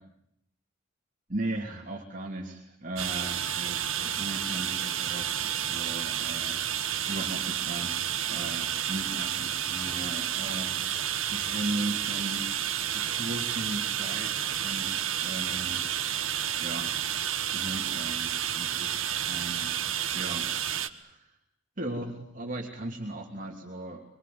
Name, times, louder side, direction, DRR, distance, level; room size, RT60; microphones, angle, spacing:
voice 1, 1.3-15.9 16.6-17.0 17.5-19.7 20.1-21.4 21.8-24.0, right 1 dB, 40° right, 0 dB, 3.1 m, -38 dB
sound 1, 3.0-20.9, right 10 dB, 70° right, 1.6 m, -30 dB
25.5 x 24.0 x 9.6 m, 0.75 s
head